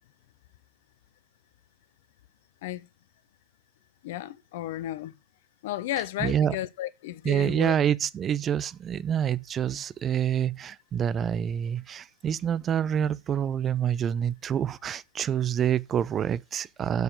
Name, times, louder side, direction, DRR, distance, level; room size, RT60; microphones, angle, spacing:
voice 1, 4.0-5.1 5.6-7.7, left 14 dB, 55° left, 0.7 m, -33 dB
voice 2, 6.2-6.6 7.2-17.0, right 9 dB, 25° right, 0.5 m, -27 dB
8.1 x 6.9 x 6.8 m
figure-of-eight pair, 90°, 0 cm